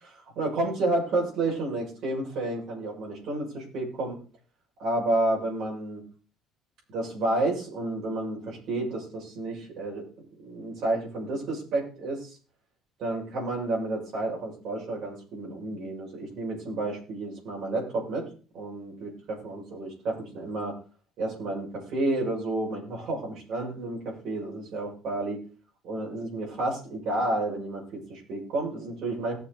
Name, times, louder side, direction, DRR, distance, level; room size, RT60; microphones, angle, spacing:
voice 1, 0.0-4.2 4.8-6.0 6.9-10.0 10.4-12.4 13.0-18.3 18.5-20.8 21.2-25.4 25.8-29.4, right 2 dB, 45° right, -3 dB, 7.0 m, -30 dB
19.0 x 7.2 x 4.2 m, 0.38 s
cardioid pair, 180°, 0 cm